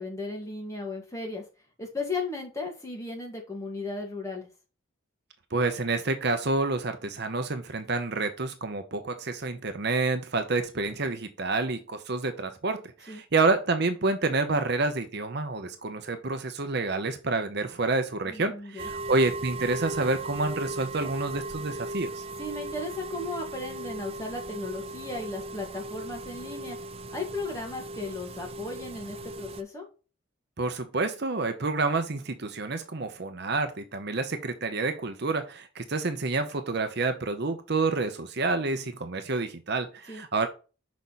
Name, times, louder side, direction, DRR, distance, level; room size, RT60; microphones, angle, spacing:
voice 1, 0.0-1.4 1.8-4.5 13.1-13.2 18.2-18.9 22.4-26.8 27.1-29.9 40.1-40.2, left 3 dB, 15° left, 0 dB, 2.0 m, -36 dB
voice 2, 5.5-22.2 30.6-40.5, right 3 dB, 50° right, 8 dB, 0.8 m, -28 dB
sound 1, 18.8-29.6, right 2 dB, 30° right, 0.4 m, -37 dB
6.0 x 5.3 x 4.1 m, 0.33 s
head